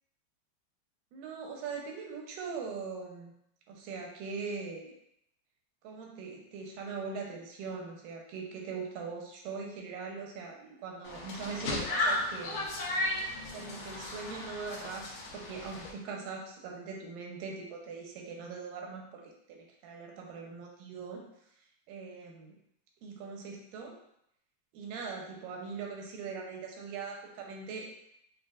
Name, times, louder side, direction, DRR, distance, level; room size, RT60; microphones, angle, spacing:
voice 1, 1.1-3.3 3.7-4.9 5.8-12.7 13.5-21.2 21.9-22.6 23.0-24.0 24.7-27.9, right 5 dB, 85° right, 0 dB, 2.4 m, -41 dB
sound 1, 11.0-15.9, left 2 dB, 70° left, 1.7 m, -35 dB
7.4 x 2.5 x 2.4 m, 0.76 s
omnidirectional pair, 3.8 m